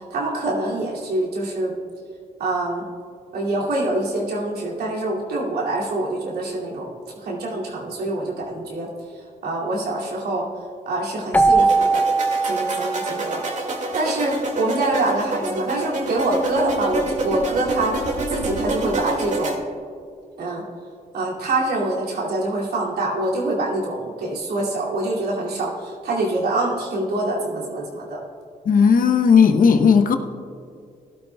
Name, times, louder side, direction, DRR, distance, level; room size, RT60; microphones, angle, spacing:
voice 1, 0.1-1.8 2.4-2.8 3.3-6.9 7.2-8.9 9.4-10.5 10.9-12.0 12.4-13.4 13.9-18.0 18.3-19.6 20.4-20.6 21.1-28.2, right 2 dB, 85° right, -4 dB, 2.6 m, -25 dB
Keyboard (musical), 11.3-14.0, right 3 dB, 10° left, 0.4 m, -20 dB
sound 1, 11.5-19.5, right 2 dB, 50° right, 2.2 m, -27 dB
voice 2, 28.6-30.2, left 6 dB, 60° left, 6 dB, 0.9 m, -15 dB
17.5 x 12.0 x 2.3 m, 2.2 s
cardioid pair, 70°, 16 cm